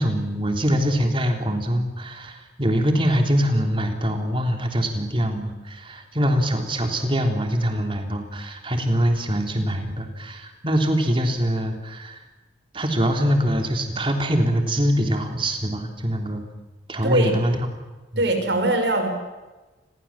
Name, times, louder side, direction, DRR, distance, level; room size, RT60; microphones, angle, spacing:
voice 1, 0.0-12.2 12.7-16.4 16.9-17.7 18.1-18.3, equal, 30° right, 4 dB, 3.4 m, -23 dB
voice 2, 18.2-19.1, right 1 dB, 80° right, 6 dB, 5.7 m, -21 dB
29.0 x 22.5 x 7.4 m, 1.2 s
head